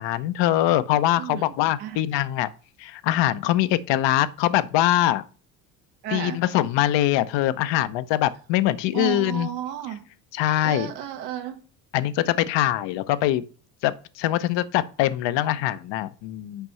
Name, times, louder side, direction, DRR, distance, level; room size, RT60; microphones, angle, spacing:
voice 1, 0.0-2.5 2.8-5.2 6.1-9.5 10.3-10.9 11.9-13.4 13.8-16.7, left 13 dB, 60° left, 0.7 m, -23 dB
voice 2, 1.2-1.5 1.8-2.0 6.0-6.4 8.9-10.0 10.6-11.6, right 10 dB, 80° right, 1.3 m, -32 dB
6.7 x 5.2 x 3.1 m
hypercardioid pair, 55°, 49 cm